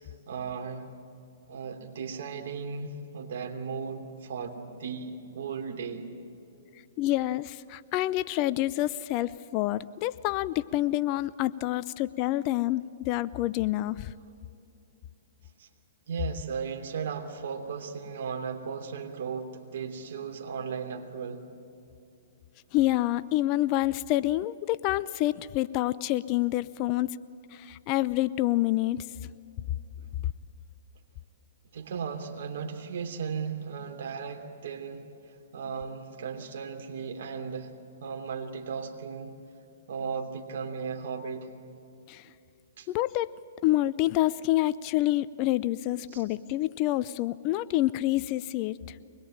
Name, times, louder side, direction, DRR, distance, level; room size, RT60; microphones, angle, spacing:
voice 1, 0.3-0.9 1.5-6.1 15.6-15.7 16.1-21.5 30.0-30.1 31.7-35.0 35.5-37.7 38.0-39.3 39.9-41.5 42.8-42.9 46.1-46.2, right 6 dB, 60° right, 4 dB, 3.1 m, -36 dB
voice 2, 7.0-14.1 22.7-27.1 27.5-29.0 42.1-42.3 42.9-43.3 43.6-49.0, left 16 dB, 40° left, 17 dB, 0.6 m, -27 dB
24.5 x 21.0 x 8.9 m, 2.7 s
hypercardioid pair, 125°, 0 cm